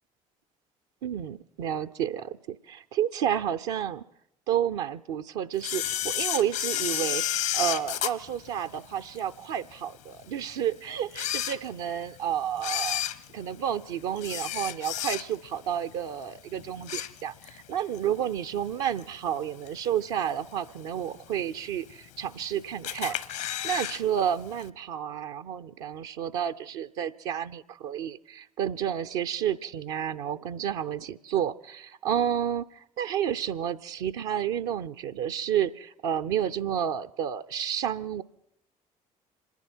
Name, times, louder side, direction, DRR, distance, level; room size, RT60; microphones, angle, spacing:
voice 1, 1.0-4.0 4.5-13.0 13.3-38.2, right 9 dB, 60° right, 10 dB, 0.6 m, -31 dB
Camera, 5.6-9.2 9.7-9.8 10.5-10.6 11.0-12.1 12.5-15.6 15.9-16.2 16.6-17.6 17.9-18.0 19.0-19.1 19.7-20.1 20.5-20.6 20.8-20.9 21.0-21.1 21.9-22.4 22.8-24.0 24.3-24.4 24.6-24.7, left 12 dB, 65° left, 0.9 m, -31 dB
27.5 x 11.0 x 4.5 m, 0.75 s
figure-of-eight pair, 50°, 18 cm